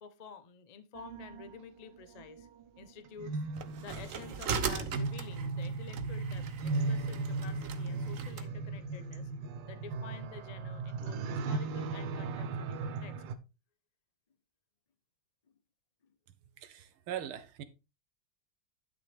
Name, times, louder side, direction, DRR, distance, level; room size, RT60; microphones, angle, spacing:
voice 1, 0.0-2.5 2.8-3.4 3.8-9.3 9.7-13.1, left 6 dB, 75° left, 0.3 m, -50 dB
sound 1, 1.0-13.4, right 3 dB, 70° right, 1.5 m, -37 dB
sound 2, 3.6-8.5, right 6 dB, 50° right, 1.0 m, -39 dB
voice 2, 16.6-17.6, right 10 dB, 85° right, 1.9 m, -41 dB
11.5 x 6.3 x 3.5 m
omnidirectional pair, 2.3 m